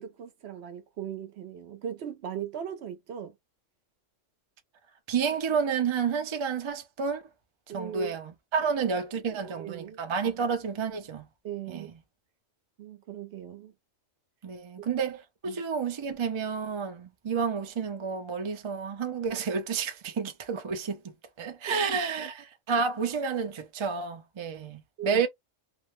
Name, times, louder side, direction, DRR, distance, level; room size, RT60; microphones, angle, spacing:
voice 1, 0.0-3.3 7.7-8.1 8.6-8.7 9.4-10.0 11.4-11.9 12.8-13.7 15.5-15.6 21.9-22.3 25.0-25.2, right 9 dB, 60° right, 0.8 m, -38 dB
voice 2, 5.1-7.2 7.7-11.3 11.7-11.9 14.4-21.0 21.4-22.3 22.7-25.3, right 6 dB, 45° right, 0.3 m, -30 dB
2.4 x 2.1 x 3.0 m
omnidirectional pair, 1.3 m